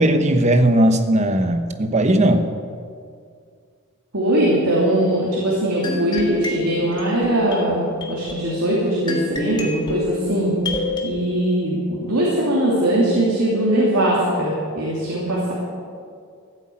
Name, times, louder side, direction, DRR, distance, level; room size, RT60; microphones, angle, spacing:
voice 1, 0.0-2.5, right 1 dB, 30° right, 8 dB, 0.9 m, -17 dB
voice 2, 4.1-10.5 11.0-15.5, right 1 dB, 90° right, -5 dB, 2.8 m, -20 dB
sound 1, 5.8-11.1, left 3 dB, 20° left, 1.7 m, -29 dB
14.5 x 8.5 x 8.6 m, 2.2 s
head